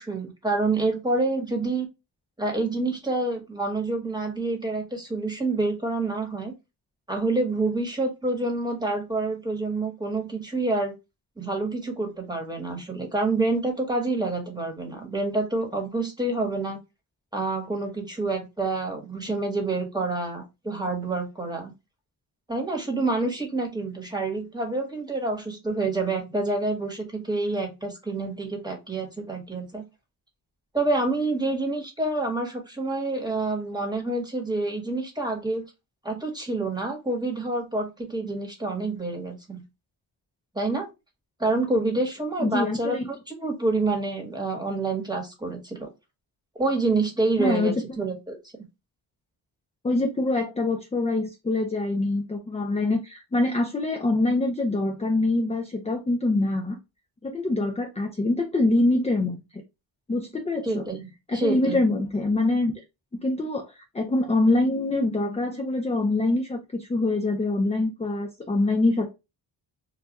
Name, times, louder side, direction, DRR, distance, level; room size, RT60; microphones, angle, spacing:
voice 1, 0.0-1.9 2.4-6.5 7.1-10.9 11.4-16.8 17.3-21.7 22.5-29.8 30.7-35.6 36.0-39.6 40.5-40.8 41.4-43.0 43.4-45.9 46.5-48.4 60.6-61.0 61.3-61.8, right 2 dB, 10° right, 2 dB, 1.1 m, -27 dB
voice 2, 42.4-43.0 47.4-47.8 49.8-56.8 57.2-59.4 60.1-60.8 61.3-62.7 63.2-69.1, left 2 dB, 15° left, 3 dB, 0.4 m, -24 dB
2.3 x 2.2 x 3.9 m, 0.24 s
wide cardioid pair, 95°, 47 cm